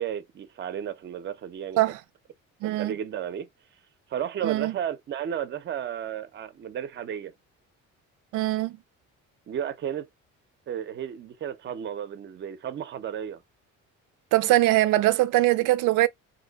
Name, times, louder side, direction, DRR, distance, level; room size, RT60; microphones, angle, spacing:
voice 1, 0.0-1.8 2.6-3.5 4.1-7.3 9.5-10.1 10.7-13.4, right 9 dB, 35° right, 0.6 m, -33 dB
voice 2, 2.6-2.9 4.4-4.7 8.3-8.8 14.3-16.1, right 16 dB, 90° right, 0.5 m, -22 dB
2.7 x 2.2 x 3.9 m
cardioid pair, 145°, 30 cm